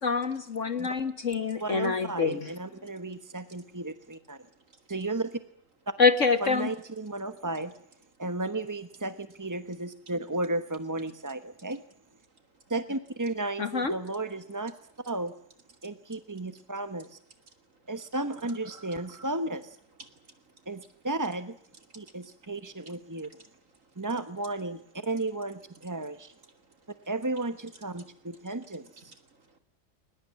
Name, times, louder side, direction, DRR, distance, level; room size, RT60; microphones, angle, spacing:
voice 1, 0.0-2.5 6.0-6.7 13.6-13.9, left 5 dB, 45° left, 12 dB, 1.5 m, -26 dB
voice 2, 1.6-4.4 4.9-5.4 6.4-7.7 8.2-11.8 12.7-14.7 15.1-15.3 15.8-17.2 17.9-19.8 20.7-21.6 21.9-23.3 24.0-26.3 27.1-29.0, right 2 dB, 15° right, 11 dB, 0.6 m, -34 dB
voice 3, 18.7-19.3 20.0-20.7 21.9-22.5 23.3-23.5 26.6-26.9 28.5-28.6 29.0-29.6, right 3 dB, 45° right, 8 dB, 3.0 m, -55 dB
21.5 x 20.0 x 9.5 m, 0.69 s
omnidirectional pair, 2.0 m